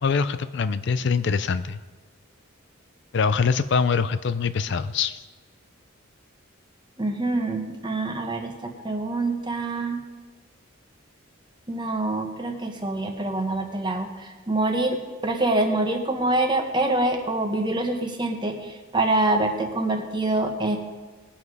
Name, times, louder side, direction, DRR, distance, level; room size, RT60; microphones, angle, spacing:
voice 1, 0.0-1.8 3.1-5.2, left 5 dB, 55° left, 13 dB, 0.4 m, -24 dB
voice 2, 7.0-10.0 11.7-20.8, right 2 dB, 20° right, 4 dB, 1.2 m, -25 dB
20.0 x 7.3 x 4.8 m, 1.3 s
head